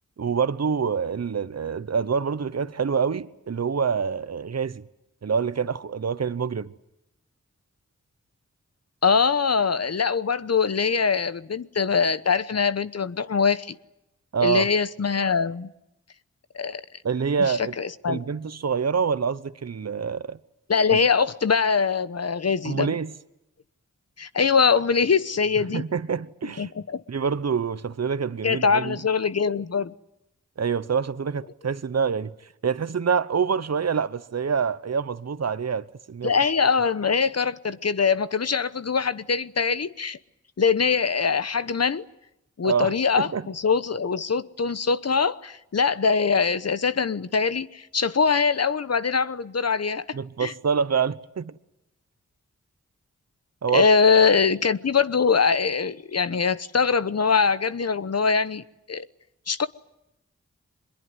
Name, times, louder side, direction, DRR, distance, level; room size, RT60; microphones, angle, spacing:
voice 1, 0.2-4.8 5.2-6.7 14.3-14.7 17.0-17.7 18.1-20.4 20.9-21.0 22.6-23.1 25.7-26.7 27.1-29.0 30.6-32.3 32.6-36.3 42.6-43.5 50.1-51.5 53.6-53.8, right 6 dB, 60° right, 1.0 m, -26 dB
voice 2, 9.0-13.8 14.4-15.7 16.5-16.8 17.8-18.2 20.7-23.0 24.2-25.8 26.6-27.0 28.4-29.9 36.2-40.2 40.6-42.0 42.6-50.5 53.7-58.6 58.9-59.0 59.5-59.7, left 5 dB, 55° left, 1.1 m, -23 dB
23.0 x 22.0 x 9.6 m
cardioid pair, 45°, 30 cm